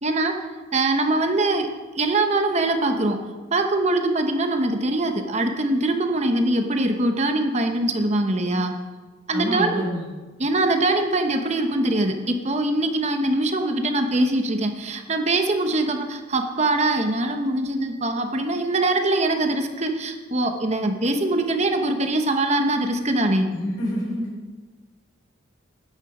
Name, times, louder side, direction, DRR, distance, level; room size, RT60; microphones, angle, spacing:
voice 1, 0.0-0.3 0.7-1.7 1.9-3.2 3.5-8.7 9.3-9.9 10.4-23.5, right 2 dB, 35° right, 5 dB, 1.0 m, -22 dB
voice 2, 9.3-10.0 23.5-24.3, equal, 75° left, -2 dB, 4.7 m, -27 dB
10.0 x 9.0 x 6.1 m, 1.3 s
head